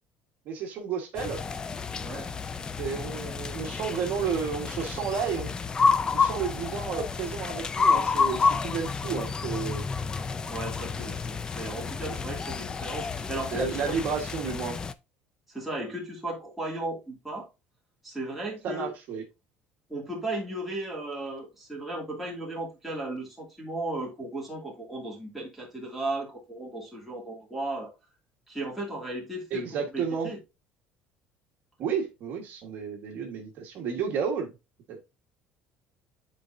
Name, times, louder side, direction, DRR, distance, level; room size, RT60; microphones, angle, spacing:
voice 1, 0.5-1.4 2.8-5.6 6.1-9.8 12.1-12.2 13.5-14.8 18.6-19.2 29.5-30.3 31.8-34.5 34.9-35.0, right 6 dB, 50° right, 1.4 m, -32 dB
sound 1, 1.2-14.9, left 5 dB, 20° left, 0.4 m, -29 dB
voice 2, 2.0-2.3 10.5-14.0 15.5-17.5 18.0-18.9 19.9-27.9 28.5-30.4, right 2 dB, 5° right, 2.4 m, -35 dB
10.0 x 4.2 x 2.6 m
cardioid pair, 155°, 4 cm